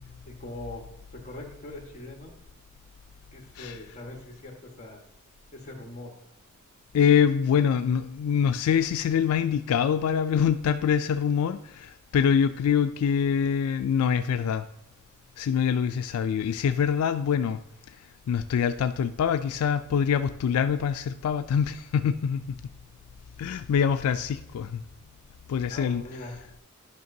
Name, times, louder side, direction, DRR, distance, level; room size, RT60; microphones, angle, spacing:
voice 1, 0.3-0.9 1.1-2.3 3.3-5.0 5.5-6.1 25.7-26.4, left 2 dB, 35° left, 1 dB, 1.4 m, -41 dB
voice 2, 6.9-14.7 15.4-17.6 18.3-22.6 23.4-24.8 25.5-26.0, left 7 dB, 80° left, 10 dB, 0.3 m, -25 dB
10.5 x 5.8 x 2.7 m, 0.85 s
head